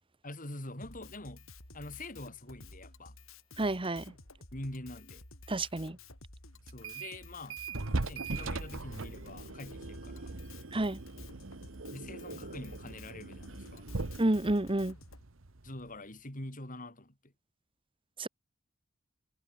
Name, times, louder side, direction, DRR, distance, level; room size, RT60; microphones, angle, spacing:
voice 1, 0.2-1.5 1.7-3.1 4.5-5.2 6.6-7.6 8.0-10.3 11.9-13.9 15.6-17.3, left 1 dB, 40° left, 5.2 m, -45 dB
Drum kit, 0.8-15.2, left 2 dB, 80° left, 5.5 m, -53 dB
voice 2, 3.6-4.0 5.5-6.0 10.7-11.0 14.2-14.9 18.2-18.3, right 1 dB, 25° right, 1.1 m, -29 dB
sound 1, 6.7-7.2 7.5-16.0, right 3 dB, 70° right, 1.3 m, -40 dB
head